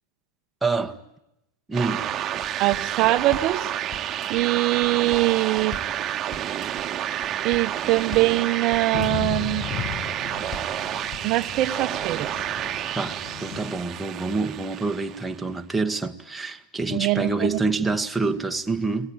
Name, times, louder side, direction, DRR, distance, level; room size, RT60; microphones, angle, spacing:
voice 1, 0.6-1.0 1.7-2.1 13.0-19.1, right 3 dB, 5° right, 1.8 m, -27 dB
sound 1, 1.7-15.4, right 10 dB, 30° right, 1.6 m, -30 dB
sound 2, 2.4-2.9 3.2-3.6 3.9-4.4 4.8-5.3 5.6-6.0 6.3-6.8 7.2-7.7 8.0-8.4 8.7-9.2 9.6-10.1 10.4-10.8 11.1-11.6 12.0-12.1, left 2 dB, 15° left, 2.9 m, -40 dB
voice 2, 2.6-3.7 4.3-5.8 7.4-9.7 11.2-12.5 16.9-17.6, right 18 dB, 50° right, 1.1 m, -23 dB
Thunder / Rain, 8.9-13.9, left 8 dB, 45° left, 2.4 m, -35 dB
30.0 x 20.5 x 8.8 m
hypercardioid pair, 105°, 0 cm